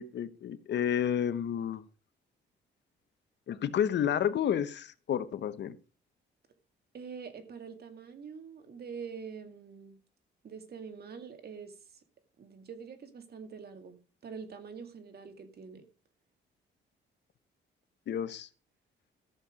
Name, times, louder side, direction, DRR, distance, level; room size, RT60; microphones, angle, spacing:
voice 1, 0.0-1.8 3.5-5.8 18.1-18.5, left 9 dB, 65° left, 1.0 m, -30 dB
voice 2, 6.9-10.0 10.4-11.7 12.4-15.9, right 6 dB, 55° right, 2.2 m, -45 dB
13.5 x 7.3 x 5.1 m
cardioid pair, 90°, 20 cm